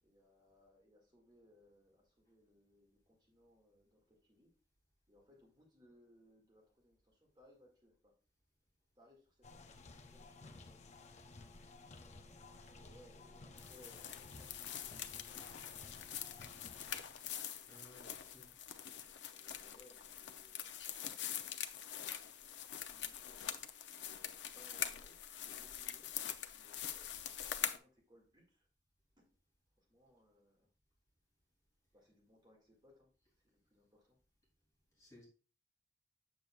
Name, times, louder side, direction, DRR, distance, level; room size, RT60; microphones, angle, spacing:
voice 1, 0.0-4.5 5.1-8.2 9.0-11.0 11.8-15.2 19.0-22.4 22.9-28.7 29.2-29.3 29.8-30.7 31.9-33.1 33.4-34.2, left 1 dB, 25° right, 2.0 m, -67 dB
sound 1, 9.4-17.2, left 3 dB, 40° left, 0.6 m, -56 dB
sound 2, 13.6-27.8, left 10 dB, 85° left, 0.6 m, -44 dB
voice 2, 17.7-18.5 35.0-35.2, left 1 dB, 20° left, 3.1 m, -60 dB
7.9 x 6.8 x 2.3 m
head